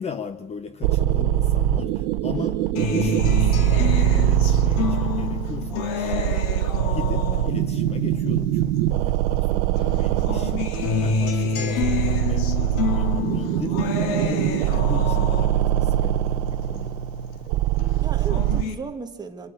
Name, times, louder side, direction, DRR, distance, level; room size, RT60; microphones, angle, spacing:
voice 1, 0.0-2.6 2.9-6.5 6.9-10.6 11.0-13.8 14.2-16.9, left 6 dB, 20° left, 0.9 m, -36 dB
sound 1, 0.8-18.6, right 12 dB, 80° right, 0.9 m, -23 dB
voice 2, 2.3-2.8 18.0-19.5, right 5 dB, 15° right, 1.9 m, -36 dB
Acoustic guitar, 2.7-9.4 9.8-17.4 17.8-18.7, left 4 dB, 70° left, 3.0 m, -29 dB
26.5 x 13.5 x 8.8 m
cardioid pair, 160°, 30 cm